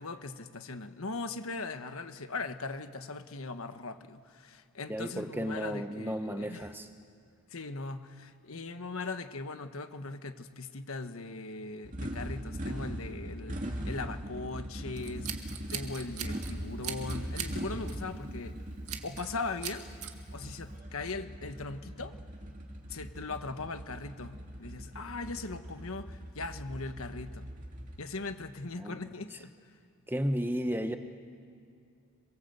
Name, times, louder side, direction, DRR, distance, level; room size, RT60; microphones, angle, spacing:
voice 1, 0.0-6.7 7.5-15.4 15.7-18.6 19.0-19.9 20.3-22.2 22.9-27.5 28.0-29.5, left 3 dB, 70° left, 9 dB, 1.3 m, -39 dB
voice 2, 4.9-6.9 28.8-29.0 30.1-31.0, equal, 10° right, 7 dB, 1.0 m, -33 dB
sound 1, 11.8-28.0, equal, 35° right, 2.4 m, -41 dB
Scissors, 15.0-16.5 16.8-17.6 17.9-18.1 18.9-19.3 19.6-20.1, right 10 dB, 90° right, 2.1 m, -39 dB
27.0 x 22.5 x 8.1 m, 2.4 s
head